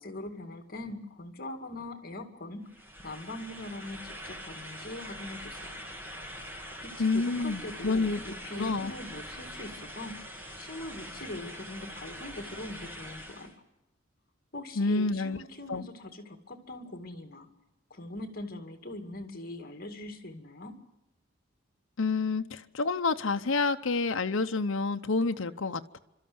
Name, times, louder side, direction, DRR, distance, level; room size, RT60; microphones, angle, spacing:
voice 1, 0.0-2.7 3.0-5.8 6.8-10.3 10.6-13.5 14.5-17.5 17.9-20.9, left 1 dB, 45° left, 5 dB, 2.2 m, -42 dB
sound 1, 2.7-13.5, equal, 10° right, 2.2 m, -43 dB
voice 2, 7.0-8.2 8.5-8.9 14.8-15.4 15.7-15.8 22.0-26.0, left 3 dB, 70° left, 7 dB, 0.8 m, -28 dB
29.5 x 13.0 x 9.5 m, 0.96 s
head